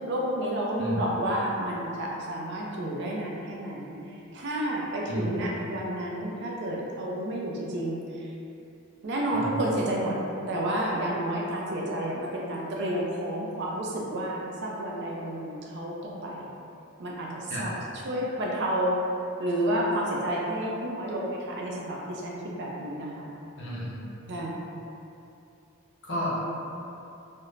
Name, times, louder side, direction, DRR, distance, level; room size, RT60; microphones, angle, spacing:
voice 1, 0.1-3.9 4.3-8.3 9.0-10.2 10.5-16.4 17.0-17.7 18.1-19.0 19.4-23.3 24.3-24.6, right 1 dB, 50° right, -3 dB, 0.4 m, -30 dB
voice 2, 5.1-5.5 9.3-9.7 17.5-17.7 23.6-24.1 26.0-26.4, equal, 55° left, -6 dB, 0.6 m, -32 dB
2.4 x 2.1 x 3.1 m, 2.8 s
head